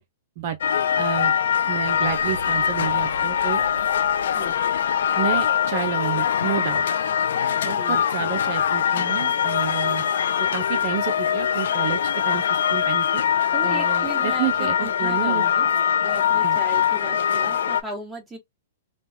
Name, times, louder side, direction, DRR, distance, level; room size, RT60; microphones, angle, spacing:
sound 1, 0.6-17.8, left 8 dB, 75° left, 0.4 m, -22 dB
voice 1, 1.0-1.3 1.7-3.6 5.2-6.8 7.6-10.0 10.4-13.2 13.6-15.4 16.4-16.6, right 10 dB, 50° right, 0.5 m, -30 dB
sound 2, 1.6-6.7, right 2 dB, 90° right, 0.7 m, -44 dB
voice 2, 7.5-8.0 13.5-15.7 16.0-18.4, right 2 dB, 10° right, 1.4 m, -36 dB
3.1 x 2.3 x 2.7 m
hypercardioid pair, 125°, 0 cm